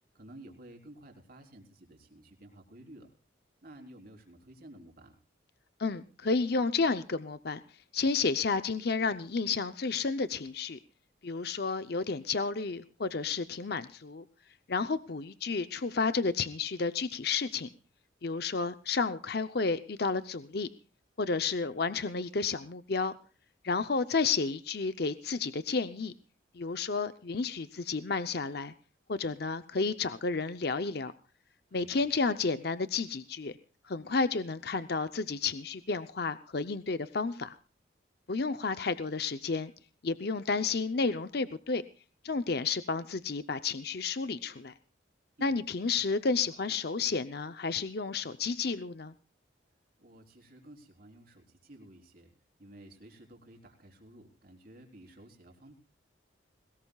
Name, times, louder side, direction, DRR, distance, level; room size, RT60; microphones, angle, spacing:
voice 1, 0.1-3.1 3.6-5.2 31.7-32.0 45.4-45.6 50.0-52.3 52.6-55.7, right 1 dB, 50° right, 3 dB, 4.0 m, -53 dB
voice 2, 5.8-7.6 7.9-10.8 11.2-14.2 14.7-17.7 18.2-20.7 21.2-23.1 23.6-26.1 26.5-28.7 29.1-31.1 31.7-33.6 33.8-37.5 38.3-39.7 40.0-41.8 42.2-44.7 45.4-49.1, left 4 dB, 55° left, 11 dB, 0.7 m, -31 dB
21.5 x 19.5 x 2.4 m, 0.37 s
head